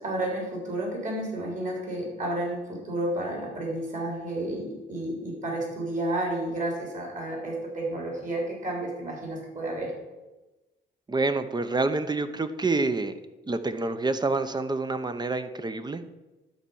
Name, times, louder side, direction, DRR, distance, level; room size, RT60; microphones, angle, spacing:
voice 1, 0.0-9.9, right 1 dB, 40° right, -1 dB, 3.8 m, -31 dB
voice 2, 11.1-13.2 13.5-16.0, right 3 dB, 20° right, 10 dB, 0.8 m, -27 dB
11.0 x 4.4 x 7.1 m, 1.1 s
cardioid pair, 90°, 20 cm